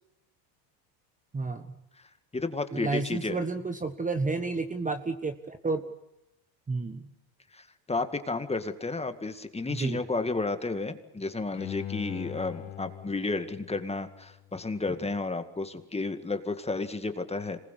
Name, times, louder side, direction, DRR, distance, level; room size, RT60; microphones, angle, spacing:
voice 1, 1.3-1.7 2.7-5.8 6.7-7.1 9.7-10.0, right 3 dB, 15° right, 8 dB, 1.4 m, -31 dB
voice 2, 2.3-3.4 7.5-17.6, left 3 dB, 10° left, 8 dB, 2.0 m, -32 dB
Bowed string instrument, 11.5-14.7 15.1-15.2, left 12 dB, 65° left, 2.4 m, -41 dB
26.5 x 20.5 x 8.4 m, 0.91 s
supercardioid pair, 105°, 49 cm